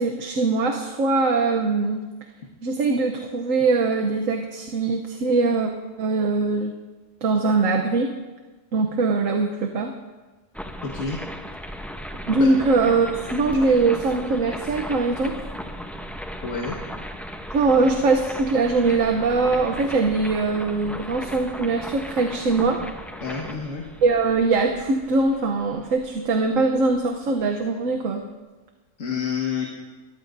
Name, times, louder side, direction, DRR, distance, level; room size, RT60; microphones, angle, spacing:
voice 1, 0.0-2.0 2.6-5.7 6.0-6.7 7.2-8.1 8.7-9.9 12.3-15.3 17.5-22.8 24.0-28.2, right 3 dB, 90° right, 3 dB, 1.3 m, -22 dB
sound 1, 10.5-27.4, equal, ahead, 0.6 m, -37 dB
voice 2, 10.8-11.2 12.4-12.5 16.4-16.8 23.2-23.8 29.0-29.7, left 6 dB, 80° left, -2 dB, 1.9 m, -28 dB
22.5 x 14.0 x 2.7 m, 1.2 s
omnidirectional pair, 1.3 m